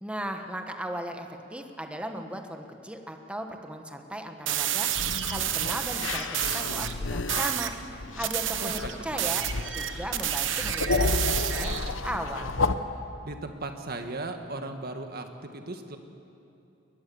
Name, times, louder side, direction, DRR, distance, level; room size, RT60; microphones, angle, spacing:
voice 1, 0.0-4.9 5.2-7.7 8.1-12.5, right 1 dB, 5° right, 5 dB, 1.4 m, -37 dB
sound 1, 4.5-6.9 7.3-7.8 8.2-11.9, right 11 dB, 75° right, 1.1 m, -30 dB
sound 2, 5.0-12.8, left 3 dB, 90° left, 0.9 m, -31 dB
voice 2, 8.6-9.3 13.2-16.0, right 2 dB, 55° right, 6 dB, 1.7 m, -37 dB
22.5 x 20.0 x 7.1 m, 2.8 s
head